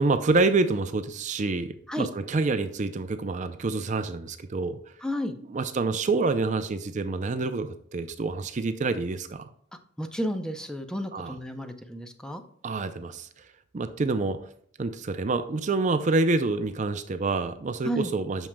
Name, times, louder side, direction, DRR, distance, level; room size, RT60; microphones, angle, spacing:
voice 1, 0.0-4.8 5.5-9.5 11.1-11.3 12.6-13.3 13.7-14.4 14.8-18.5, right 3 dB, 40° right, 9 dB, 0.4 m, -27 dB
voice 2, 5.0-5.4 10.0-12.4 17.8-18.1, equal, 5° left, 7 dB, 0.6 m, -32 dB
8.9 x 6.4 x 2.2 m, 0.63 s
head